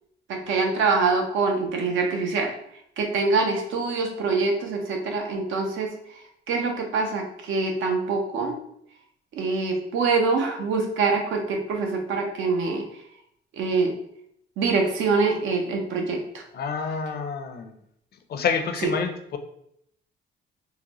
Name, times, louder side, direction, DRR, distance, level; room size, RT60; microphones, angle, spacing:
voice 1, 0.3-2.5 3.0-5.9 6.5-8.6 9.3-12.8 13.5-14.0 14.6-16.2 18.8-18.9, right 4 dB, 80° right, 2 dB, 0.7 m, -24 dB
voice 2, 16.5-17.7 18.3-19.4, left 6 dB, 55° left, 7 dB, 0.5 m, -28 dB
3.8 x 2.1 x 2.9 m, 0.73 s
cardioid pair, 90°, 20 cm